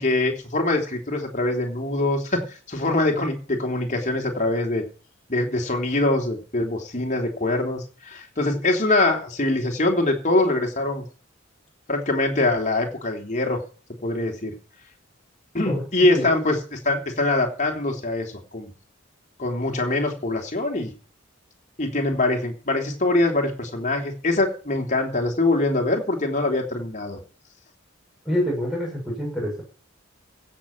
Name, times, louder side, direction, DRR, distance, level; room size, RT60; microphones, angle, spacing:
voice 1, 0.0-4.8 5.3-11.0 11.9-13.6 14.0-14.5 15.5-18.7 19.4-20.9 21.8-27.2, left 2 dB, 40° left, 1 dB, 3.4 m, -23 dB
voice 2, 15.7-16.3 28.2-29.6, equal, ahead, -3 dB, 6.8 m, -27 dB
16.5 x 7.2 x 7.4 m, 0.38 s
head